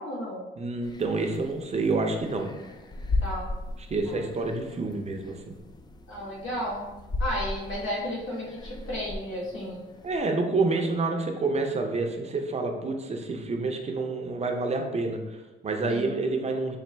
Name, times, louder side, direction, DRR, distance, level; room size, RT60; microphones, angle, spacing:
voice 1, 0.0-0.5 3.2-3.5 4.0-4.2 6.1-6.9 7.2-9.8 15.9-16.1, equal, 85° left, -3 dB, 1.2 m, -33 dB
voice 2, 0.6-2.5 3.8-5.5 10.0-16.8, right 3 dB, 35° right, 3 dB, 0.6 m, -28 dB
sound 1, 0.8-10.2, left 2 dB, 20° left, 0.3 m, -36 dB
4.1 x 2.4 x 3.3 m, 1.1 s
cardioid pair, 90°, 20 cm